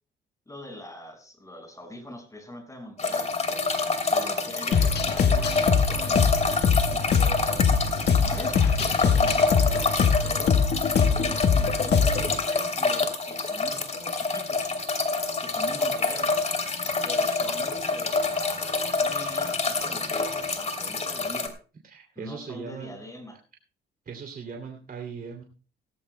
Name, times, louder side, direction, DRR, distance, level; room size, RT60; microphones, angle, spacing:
voice 1, 0.5-3.3 4.0-10.6 11.0-14.7 15.4-16.4 17.0-21.5 22.2-23.4, left 1 dB, 15° left, 5 dB, 5.4 m, -43 dB
sound 1, 3.0-21.5, left 3 dB, 35° left, 2.9 m, -27 dB
sound 2, 4.7-12.4, left 6 dB, 60° left, 1.4 m, -23 dB
voice 2, 21.8-22.9 24.1-25.4, right 6 dB, 45° right, 1 dB, 2.8 m, -39 dB
17.0 x 15.5 x 2.2 m, 0.36 s
cardioid pair, 90°, 20 cm